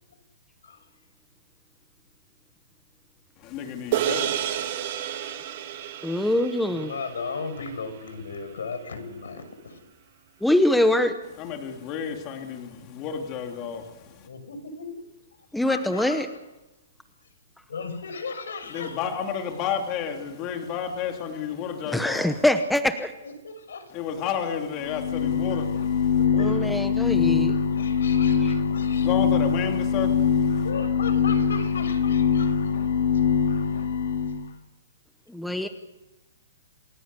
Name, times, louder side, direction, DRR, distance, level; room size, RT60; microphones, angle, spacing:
voice 1, 3.4-4.7 11.4-14.3 18.7-22.3 23.9-26.2 28.9-30.6, left 7 dB, 20° left, 3 dB, 2.9 m, -32 dB
sound 1, 3.9-8.5, right 10 dB, 35° right, 2.9 m, -31 dB
voice 2, 6.0-6.9 10.4-11.2 15.5-16.3 21.9-23.1 26.3-27.5 28.4-28.5 35.3-35.7, left 1 dB, ahead, 8 dB, 0.9 m, -23 dB
voice 3, 6.7-9.8 14.2-15.0 15.6-16.3 17.7-19.0 23.2-24.0 26.3-26.7 27.7-29.1 30.6-32.5 33.1-33.2 35.5-35.6, left 4 dB, 75° left, 8 dB, 6.5 m, -36 dB
sound 2, 24.8-34.4, left 6 dB, 60° left, 3.4 m, -23 dB
28.0 x 19.5 x 8.3 m, 1.0 s
hypercardioid pair, 175°, 0 cm